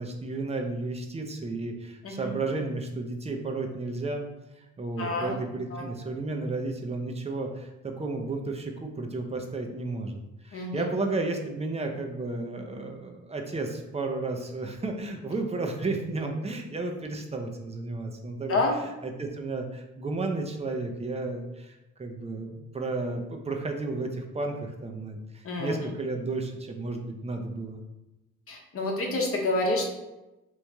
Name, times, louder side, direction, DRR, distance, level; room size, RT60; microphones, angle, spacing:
voice 1, 0.0-4.3 4.6-10.2 10.4-18.6 19.0-27.8, right 3 dB, 20° right, 3 dB, 0.5 m, -33 dB
voice 2, 5.0-5.4 5.7-5.8 10.5-10.8 18.5-18.8 25.4-25.7 28.5-29.9, left 2 dB, 50° left, 0 dB, 0.9 m, -28 dB
3.1 x 2.6 x 3.4 m, 0.99 s
cardioid pair, 90°, 30 cm